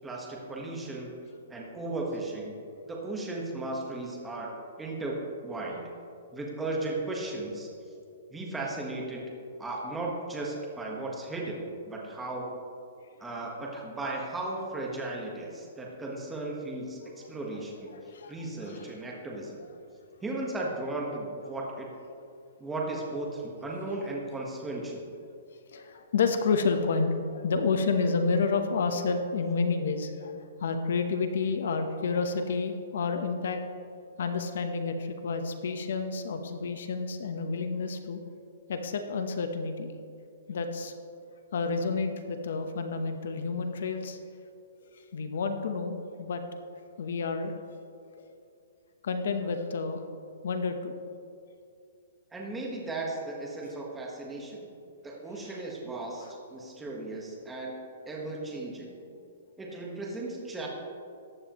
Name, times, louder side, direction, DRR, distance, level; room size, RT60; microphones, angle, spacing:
voice 1, 0.0-1.1 1.5-2.6 2.9-4.5 4.8-5.2 5.4-5.9 6.3-7.7 8.3-9.3 9.6-12.5 13.2-17.0 17.3-17.9 18.3-19.6 20.2-21.9 22.6-25.0 52.3-54.7 55.0-57.8 58.0-58.9 59.6-60.7, right 2 dB, 5° right, -2 dB, 1.3 m, -36 dB
voice 2, 17.9-18.9 19.3-19.5 24.0-24.1 25.7-33.6 34.2-38.2 38.7-40.0 40.5-40.9 41.5-44.2 44.8-46.4 47.0-47.7 49.0-50.0 50.4-50.9 55.4-55.6 56.2-56.3, left 4 dB, 65° left, 7 dB, 1.0 m, -30 dB
14.5 x 9.7 x 3.1 m, 2.5 s
hypercardioid pair, 170°, 0 cm